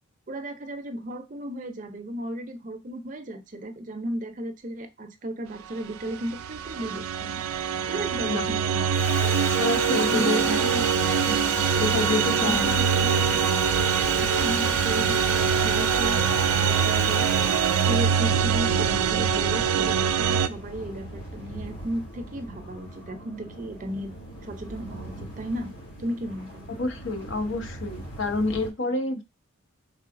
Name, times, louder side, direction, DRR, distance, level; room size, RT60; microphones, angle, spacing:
voice 1, 0.3-7.4 7.9-9.5 9.9-10.8 12.4-13.4 14.2-17.3 17.8-24.1 24.4-25.7 26.0-26.7, right 1 dB, 35° right, 7 dB, 0.5 m, -35 dB
sound 1, 6.1-20.5, right 7 dB, 90° right, 0.4 m, -24 dB
voice 2, 8.2-8.5 9.6-10.9 11.3-12.8 26.8-29.2, left 3 dB, 60° left, 6 dB, 0.7 m, -29 dB
Sawing, 8.9-20.0, right 2 dB, 10° left, 0.7 m, -32 dB
sound 2, 10.8-28.7, right 1 dB, 75° left, 2.5 m, -42 dB
4.6 x 3.5 x 2.5 m, 0.24 s
head